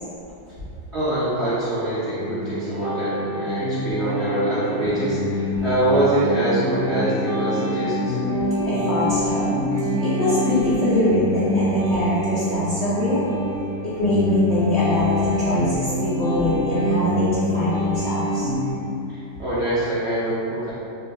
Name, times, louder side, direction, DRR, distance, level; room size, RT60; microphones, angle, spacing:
voice 1, 0.9-8.2 19.1-20.7, right 1 dB, 65° right, -11 dB, 0.7 m, -24 dB
sound 1, 2.1-18.7, left 1 dB, 80° right, 2.2 m, -25 dB
voice 2, 8.6-9.6 10.0-13.2 13.8-15.1 15.5-18.5, left 1 dB, 80° left, -9 dB, 0.6 m, -23 dB
5.3 x 2.3 x 2.6 m, 2.8 s
omnidirectional pair, 2.0 m